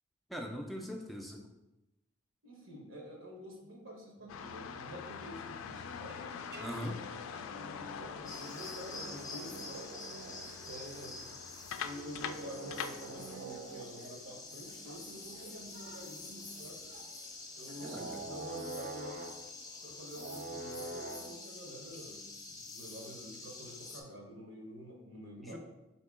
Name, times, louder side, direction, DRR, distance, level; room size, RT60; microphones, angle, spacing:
voice 1, 0.3-1.4 6.6-7.0 17.9-18.0 25.4-25.6, equal, ahead, 1 dB, 0.3 m, -40 dB
voice 2, 2.4-6.3 7.2-9.9 10.6-11.2 11.8-16.9 17.6-19.2 19.8-25.6, equal, 85° right, 0 dB, 1.0 m, -48 dB
sound 1, 4.3-13.4, left 7 dB, 80° left, 0.3 m, -44 dB
sound 2, 6.1-21.4, right 3 dB, 55° right, 0.5 m, -48 dB
sound 3, 8.3-24.0, left 3 dB, 20° left, 0.7 m, -48 dB
4.5 x 2.8 x 3.5 m, 0.97 s
head